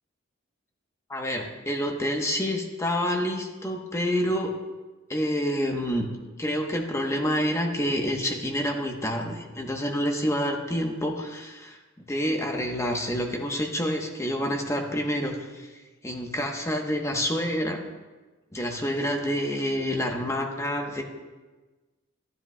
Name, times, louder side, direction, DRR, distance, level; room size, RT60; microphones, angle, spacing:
voice 1, 1.1-4.5 5.1-6.1 6.4-15.7 16.0-17.8 18.5-21.0, equal, 15° left, 2 dB, 0.9 m, -28 dB
12.0 x 11.0 x 2.2 m, 1.2 s
head